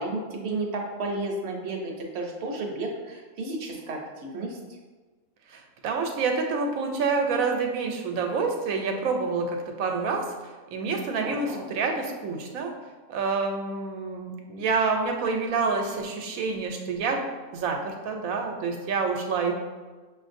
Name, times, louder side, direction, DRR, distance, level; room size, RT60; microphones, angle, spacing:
voice 1, 0.0-4.6 11.2-11.6, right 2 dB, 60° right, 1 dB, 0.8 m, -32 dB
voice 2, 5.5-10.3 10.7-12.7 13.1-17.2 17.5-19.5, right 4 dB, 85° right, 3 dB, 1.0 m, -27 dB
5.7 x 2.5 x 2.5 m, 1.4 s
omnidirectional pair, 1.4 m